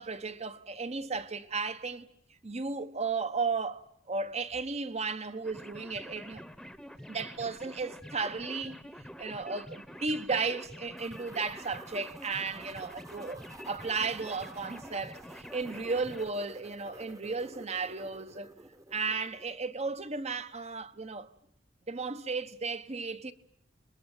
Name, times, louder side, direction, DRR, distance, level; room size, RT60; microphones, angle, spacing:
voice 1, 0.0-2.1 2.4-6.4 7.1-8.8 9.2-18.5 18.9-21.3 21.9-23.3, right 4 dB, 35° right, 1.2 m, -34 dB
sound 1, 5.4-16.3, equal, ahead, 1.1 m, -47 dB
sound 2, 11.0-19.5, right 1 dB, 20° right, 1.2 m, -52 dB
29.5 x 21.5 x 9.1 m
head